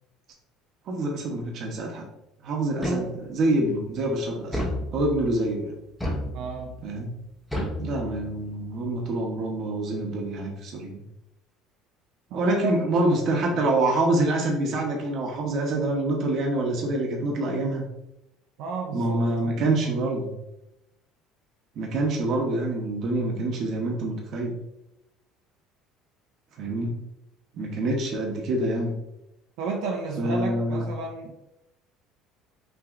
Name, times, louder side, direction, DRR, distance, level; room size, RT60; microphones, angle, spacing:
voice 1, 0.9-2.1 2.4-4.6 4.9-5.7 6.8-7.1 7.8-11.0 12.3-17.8 18.9-20.3 21.8-24.5 26.6-26.9 27.5-28.9 30.2-30.9, right 2 dB, 40° right, 1 dB, 0.9 m, -26 dB
sound 1, 2.8-3.5 4.5-5.4 6.0-6.8 7.5-8.5, equal, 5° left, 0.7 m, -31 dB
voice 2, 6.3-6.8 12.3-13.2 13.5-13.7 18.6-20.0 29.6-31.3, right 4 dB, 65° right, 0 dB, 0.6 m, -33 dB
5.9 x 3.0 x 2.5 m, 0.88 s
cardioid pair, 175°, 0 cm